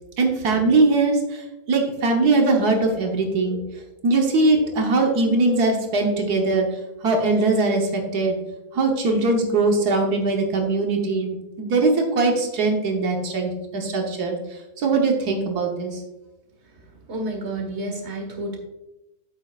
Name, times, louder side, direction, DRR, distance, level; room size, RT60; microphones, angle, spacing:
voice 1, 0.2-3.6 4.0-6.7 7.0-8.4 8.7-14.4 14.8-16.0, right 3 dB, 85° right, 2 dB, 1.6 m, -21 dB
voice 2, 16.7-18.6, right 1 dB, 45° right, 2 dB, 1.8 m, -31 dB
8.7 x 8.2 x 2.4 m, 0.98 s
omnidirectional pair, 1.6 m